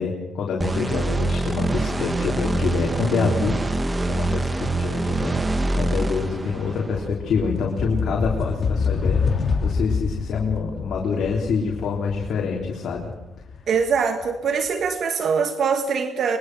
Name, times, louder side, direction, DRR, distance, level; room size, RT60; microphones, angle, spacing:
voice 1, 0.0-3.6 4.0-5.4 5.7-13.1, left 5 dB, 65° left, -2 dB, 3.7 m, -26 dB
sound 1, 0.6-7.1, right 2 dB, 20° right, 1.4 m, -24 dB
sound 2, 5.8-14.2, left 5 dB, 40° left, 2.4 m, -27 dB
voice 2, 13.7-16.4, right 5 dB, 60° right, 7 dB, 1.7 m, -23 dB
23.5 x 22.0 x 6.3 m, 1.0 s
cardioid pair, 90°, 0 cm